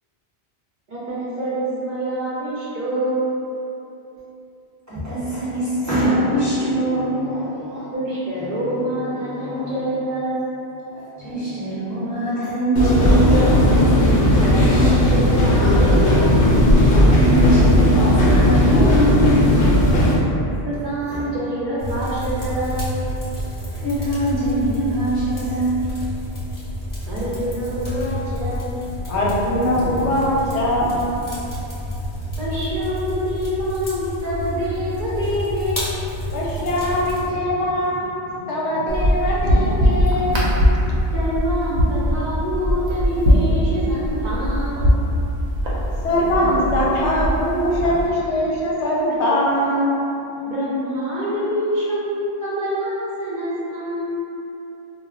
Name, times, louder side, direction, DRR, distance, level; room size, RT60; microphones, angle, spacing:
voice 1, 0.9-3.4 7.9-10.6 14.4-16.7 20.6-23.0 27.1-28.7 32.4-36.1 41.1-44.8 50.4-54.1, right 1 dB, 55° right, -10 dB, 0.7 m, -26 dB
voice 2, 4.9-7.9 8.6-8.7 9.3-9.7 10.9-13.6 16.9-19.5 21.1-21.3 23.8-25.8, right 1 dB, 15° right, -14 dB, 1.0 m, -23 dB
sound 1, 12.8-20.2, left 1 dB, 60° left, 0.7 m, -15 dB
sound 2, 21.8-37.3, left 1 dB, 30° left, 0.4 m, -29 dB
voice 3, 29.1-31.2 36.3-40.5 46.0-50.0, left 1 dB, 90° left, -4 dB, 0.9 m, -21 dB
sound 3, 38.9-48.1, equal, 80° right, 0.8 m, -21 dB
2.1 x 2.0 x 3.7 m, 2.9 s
omnidirectional pair, 1.1 m